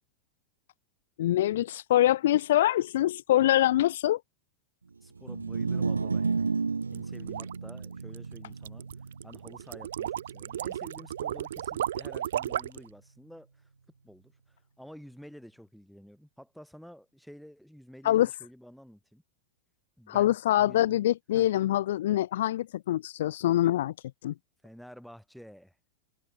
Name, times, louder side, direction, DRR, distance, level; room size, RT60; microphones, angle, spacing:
voice 1, 1.2-4.2 18.0-18.3 20.1-23.9 24.2-24.3, left 13 dB, 60° left, 0.5 m, -24 dB
voice 2, 5.0-6.5 6.9-8.9 9.2-13.7 14.0-19.2 20.0-21.5 24.6-25.7, equal, ahead, 6.7 m, -50 dB
sound 1, 5.2-11.5, right 4 dB, 75° right, 0.7 m, -33 dB
sound 2, 6.8-12.9, right 11 dB, 60° right, 1.6 m, -34 dB
figure-of-eight pair, 90°, 0 cm